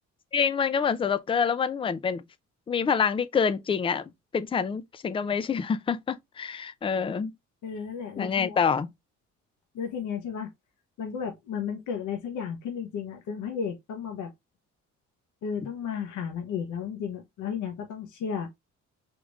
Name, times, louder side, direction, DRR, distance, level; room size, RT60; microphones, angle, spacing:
voice 1, 0.3-2.2 2.7-7.3 8.2-8.9, left 6 dB, 20° left, 0.3 m, -27 dB
voice 2, 7.6-8.6 9.7-10.5 11.0-14.3 15.4-18.5, left 7 dB, 80° left, 0.9 m, -33 dB
3.6 x 2.5 x 3.0 m
cardioid pair, 90°, 30 cm